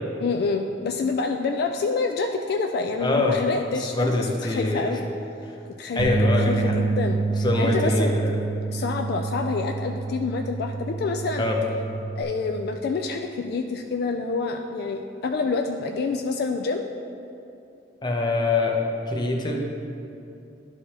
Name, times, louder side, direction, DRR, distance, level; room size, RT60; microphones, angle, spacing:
voice 1, 0.2-5.1 5.8-7.2 7.6-8.1 8.7-11.5 12.2-16.9, left 4 dB, 60° left, 4 dB, 0.3 m, -27 dB
voice 2, 3.0-3.4 3.8-5.0 5.9-6.8 7.4-8.4 11.4-11.6 18.0-18.8 19.1-19.6, left 2 dB, 25° left, 1 dB, 0.7 m, -24 dB
sound 1, 6.0-12.2, right 3 dB, 65° right, 0.6 m, -27 dB
11.0 x 4.8 x 2.9 m, 2.7 s
head